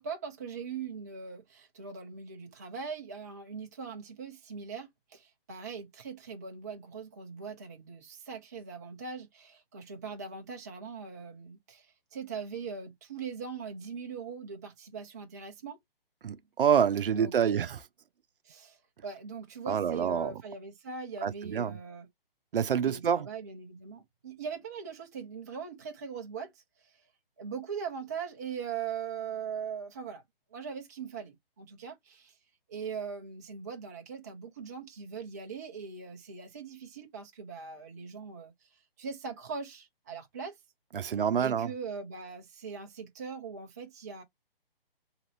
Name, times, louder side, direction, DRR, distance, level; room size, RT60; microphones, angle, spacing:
voice 1, 0.0-15.8 17.1-17.7 18.4-22.1 22.9-26.5 27.4-30.2 30.5-32.3 32.7-38.5 39.0-40.6 41.0-44.2, right 6 dB, 20° right, 0.3 m, -41 dB
voice 2, 16.2-17.8 19.7-20.4 21.2-21.8 22.5-23.3 40.9-41.7, right 8 dB, 65° right, 0.6 m, -27 dB
2.8 x 2.6 x 2.9 m
figure-of-eight pair, 140°, 30 cm